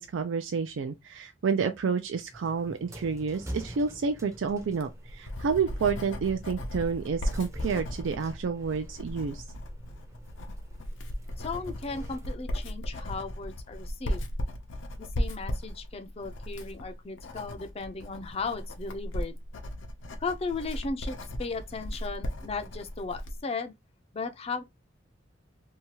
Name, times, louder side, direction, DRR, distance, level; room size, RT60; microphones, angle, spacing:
voice 1, 0.0-9.4, right 5 dB, 90° right, 0.4 m, -29 dB
sound 1, 2.3-12.3, right 1 dB, 15° right, 0.5 m, -47 dB
Writing, 4.6-23.4, equal, 85° left, 0.6 m, -36 dB
voice 2, 11.4-14.2 15.0-19.4 20.2-23.7 24.1-24.6, left 4 dB, 30° left, 0.4 m, -36 dB
2.8 x 2.3 x 2.8 m
head